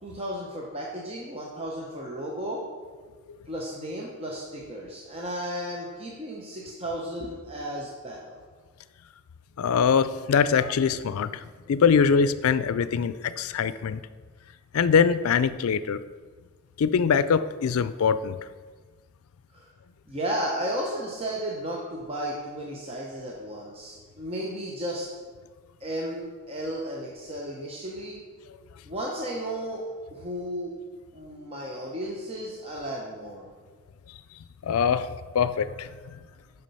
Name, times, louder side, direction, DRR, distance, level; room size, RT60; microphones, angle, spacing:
voice 1, 0.0-2.6 3.5-8.3 19.5-19.7 20.1-25.1 25.8-28.2 28.9-30.8 31.1-33.5, equal, 25° right, -3 dB, 0.9 m, -34 dB
voice 2, 9.6-11.4 11.7-14.0 14.7-16.0 16.8-18.4 34.6-35.1 35.3-35.9, left 6 dB, 85° left, 14 dB, 0.4 m, -23 dB
7.4 x 5.7 x 5.4 m, 1.5 s
head